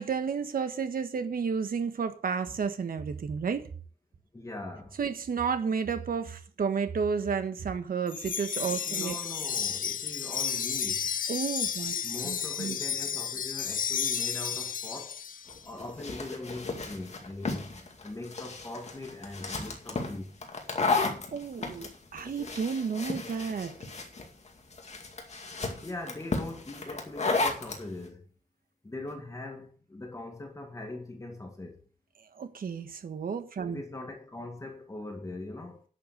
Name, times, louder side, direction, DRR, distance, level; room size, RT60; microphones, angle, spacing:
voice 1, 0.0-3.7 5.0-9.2 11.3-12.8 21.3-23.7 32.3-33.8, right 6 dB, 75° right, 1.5 m, -32 dB
voice 2, 4.3-5.0 8.9-11.1 12.0-15.2 15.6-20.4 25.8-28.3 28.8-31.8 33.7-35.8, left 2 dB, 20° left, 1.9 m, -41 dB
Wind chime, 8.1-15.6, left 8 dB, 70° left, 0.6 m, -32 dB
sound 1, 15.5-27.8, left 3 dB, 50° left, 2.3 m, -33 dB
10.5 x 7.0 x 6.6 m
wide cardioid pair, 145°, 15 cm